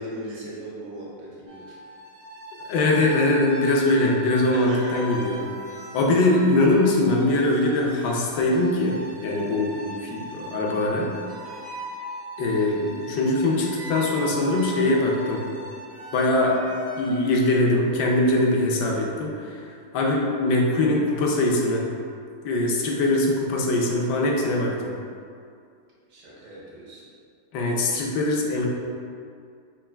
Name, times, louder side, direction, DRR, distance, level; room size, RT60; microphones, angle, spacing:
voice 1, 0.0-1.7 4.5-5.0 5.7-5.8 9.7-10.1 12.6-12.7 26.1-27.1, right 1 dB, 75° right, -6 dB, 1.5 m, -38 dB
sound 1, 1.5-17.5, equal, 90° right, 1.4 m, -39 dB
voice 2, 2.7-5.4 5.9-11.1 12.4-15.4 16.1-16.6 17.0-19.6 19.9-21.9 22.4-24.9 27.5-28.7, left 2 dB, 75° left, -1 dB, 1.1 m, -22 dB
5.4 x 2.4 x 2.2 m, 2.3 s
omnidirectional pair, 1.9 m